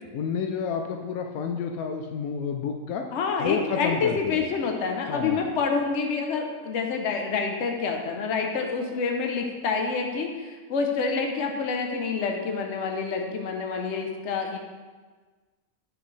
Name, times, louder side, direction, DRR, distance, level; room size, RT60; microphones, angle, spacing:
voice 1, 0.1-3.0 3.4-4.4 5.1-5.5, left 6 dB, 80° left, 4 dB, 1.0 m, -30 dB
voice 2, 3.1-14.6, left 5 dB, 60° left, 3 dB, 1.0 m, -27 dB
7.7 x 6.1 x 3.2 m, 1.4 s
omnidirectional pair, 1.5 m